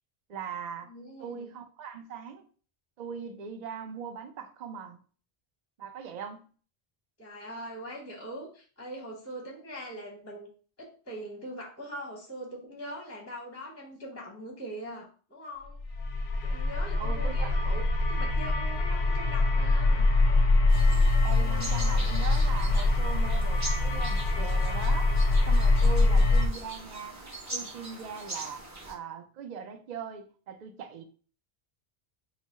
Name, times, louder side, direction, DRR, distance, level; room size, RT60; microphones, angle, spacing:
voice 1, 0.3-0.9 1.2-2.4 3.0-5.0 5.8-6.4 17.0-17.7 17.9-18.0 21.2-25.1 25.5-27.2 27.5-28.6 28.9-31.0, right 7 dB, 55° right, 6 dB, 0.6 m, -40 dB
voice 2, 0.9-1.5 7.2-10.5 10.8-15.8 16.4-20.1 21.3-22.1 25.8-26.3, equal, 15° left, 0 dB, 0.7 m, -42 dB
sound 1, 15.8-26.5, left 2 dB, 55° left, 0.6 m, -24 dB
sound 2, 20.7-28.9, right 2 dB, 20° right, 0.7 m, -42 dB
4.1 x 2.0 x 4.0 m, 0.40 s
omnidirectional pair, 1.0 m